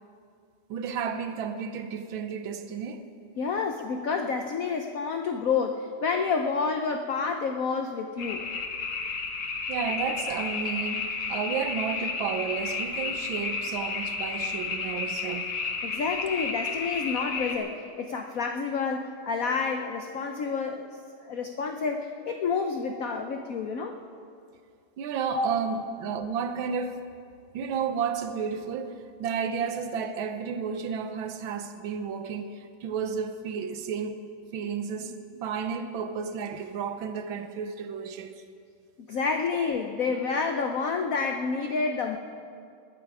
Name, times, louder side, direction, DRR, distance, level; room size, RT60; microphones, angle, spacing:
voice 1, 0.7-3.1 9.7-15.5 25.0-27.0 27.5-34.2 34.5-38.4, right 6 dB, 70° right, 1.6 m, -32 dB
voice 2, 3.4-8.5 15.8-20.9 21.2-24.0 25.3-25.8 39.0-42.2, left 5 dB, 70° left, 0.8 m, -29 dB
sound 1, 8.2-17.6, left 4 dB, 50° left, 1.4 m, -32 dB
19.5 x 12.5 x 4.8 m
omnidirectional pair, 2.4 m